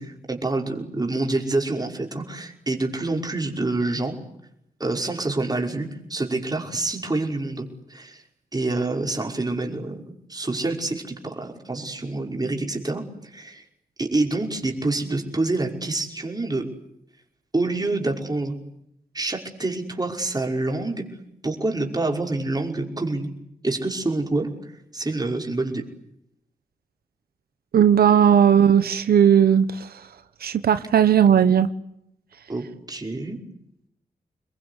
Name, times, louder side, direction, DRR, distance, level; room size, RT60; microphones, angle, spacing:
voice 1, 0.0-4.2 4.8-8.2 8.5-13.6 14.0-16.6 17.5-18.5 19.1-21.0 21.4-23.3 23.6-25.8 32.5-33.4, right 2 dB, 25° right, 2 dB, 5.6 m, -27 dB
voice 2, 27.7-30.0 30.4-31.7, right 8 dB, 90° right, 11 dB, 1.1 m, -17 dB
27.0 x 22.0 x 9.8 m, 0.78 s
cardioid pair, 80°, 15 cm